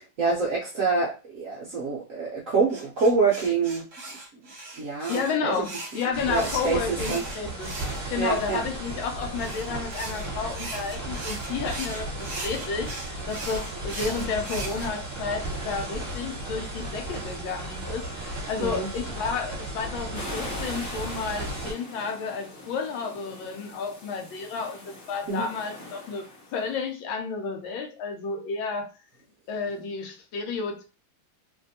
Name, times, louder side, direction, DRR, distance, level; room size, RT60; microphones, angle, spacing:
voice 1, 0.0-3.9 4.8-5.6 6.3-6.8 7.1-7.2 8.2-8.6 18.6-18.9 25.3-25.5, right 4 dB, 65° right, 0.8 m, -26 dB
sound 1, 2.7-8.5 9.3-14.9, right 2 dB, 50° right, 1.1 m, -39 dB
voice 2, 5.1-7.7 8.1-28.9 29.5-30.8, left 5 dB, 80° left, 1.5 m, -31 dB
sound 2, 6.1-21.7, right 1 dB, 10° right, 1.4 m, -35 dB
sound 3, 20.1-26.7, left 2 dB, 40° left, 0.9 m, -42 dB
3.3 x 2.6 x 2.7 m
omnidirectional pair, 2.1 m